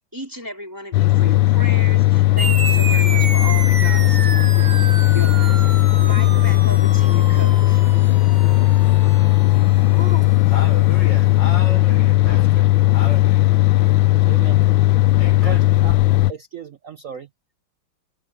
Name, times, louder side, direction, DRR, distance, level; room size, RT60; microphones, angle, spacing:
voice 1, 0.1-4.8 5.1-7.8 8.3-8.5, equal, 10° right, 4.0 m, -35 dB
sound 1, 0.9-16.3, left 17 dB, 90° left, 1.4 m, -16 dB
sound 2, 2.4-11.3, right 4 dB, 25° right, 1.2 m, -31 dB
voice 2, 9.9-13.9 15.2-15.6, left 3 dB, 65° left, 6.9 m, -34 dB
voice 3, 14.3-14.6 15.4-15.9 16.3-17.3, right 7 dB, 55° right, 1.1 m, -35 dB
omnidirectional pair, 2.1 m